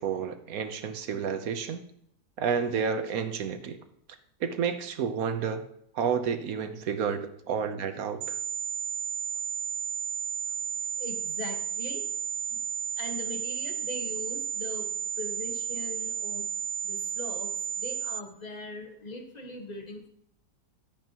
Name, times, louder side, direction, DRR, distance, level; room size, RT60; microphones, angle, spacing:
voice 1, 0.0-1.8 2.4-3.8 4.4-5.6 5.9-8.2, right 6 dB, 60° right, 9 dB, 1.3 m, -30 dB
sound 1, 8.2-18.2, right 8 dB, 80° right, 1.2 m, -33 dB
voice 2, 10.9-12.1 12.5-12.6 13.0-16.5 16.8-20.1, left 2 dB, 25° left, 3 dB, 1.5 m, -41 dB
12.0 x 8.9 x 3.0 m, 0.71 s
omnidirectional pair, 1.8 m